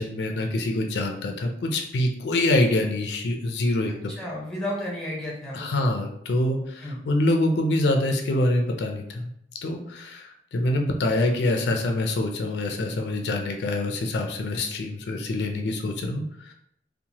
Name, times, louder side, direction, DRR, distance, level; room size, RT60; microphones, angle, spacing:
voice 1, 0.0-4.1 5.5-9.3 9.6-16.5, left 1 dB, 75° left, 3 dB, 0.4 m, -25 dB
voice 2, 4.1-5.9 6.8-7.0, left 1 dB, 5° left, -3 dB, 0.6 m, -32 dB
2.8 x 2.1 x 2.7 m, 0.74 s
head